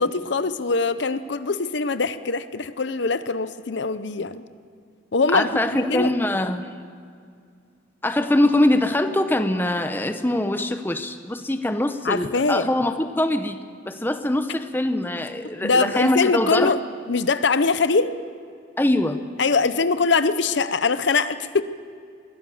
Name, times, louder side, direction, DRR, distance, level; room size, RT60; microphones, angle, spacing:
voice 1, 0.0-4.4 5.1-6.1 12.0-12.6 15.6-16.8 17.1-18.1 19.4-21.6, left 4 dB, 65° left, 13 dB, 0.7 m, -22 dB
voice 2, 5.3-6.8 8.0-13.6 13.9-16.8 18.8-19.2, left 1 dB, 10° left, 8 dB, 0.8 m, -23 dB
22.0 x 16.5 x 7.1 m, 2.3 s
head